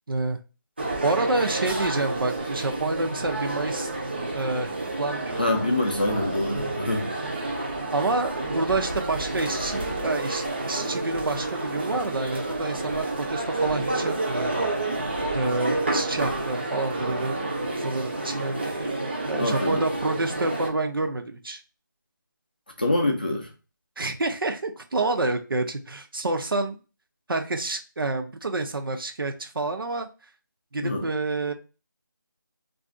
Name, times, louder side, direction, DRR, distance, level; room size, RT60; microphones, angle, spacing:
voice 1, 0.1-0.4 1.0-3.9 4.3-4.7 5.0-5.4 7.9-14.6 15.3-17.4 17.8-21.6 24.0-26.8 27.3-30.1 30.7-31.5, right 2 dB, 85° right, 0.6 m, -28 dB
sound 1, 0.8-20.7, right 2 dB, 30° right, 0.5 m, -30 dB
voice 2, 5.4-7.1 19.3-19.9 22.8-23.5 30.8-31.1, left 2 dB, 25° left, 0.4 m, -25 dB
2.5 x 2.3 x 3.7 m
figure-of-eight pair, 175°, 11 cm